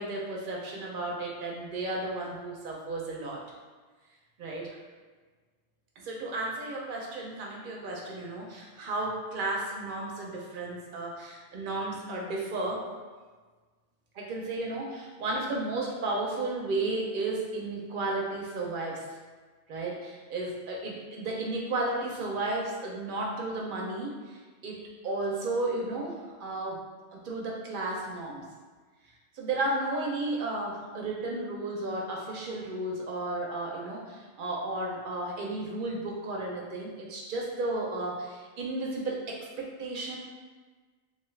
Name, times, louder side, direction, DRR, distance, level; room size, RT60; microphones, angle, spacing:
voice 1, 0.0-3.4 4.4-4.8 6.0-12.8 14.1-19.0 19.7-24.8 25.0-26.8 27.1-28.4 29.3-40.2, right 2 dB, 55° right, -2 dB, 0.6 m, -33 dB
2.7 x 2.3 x 3.1 m, 1.4 s
omnidirectional pair, 1.2 m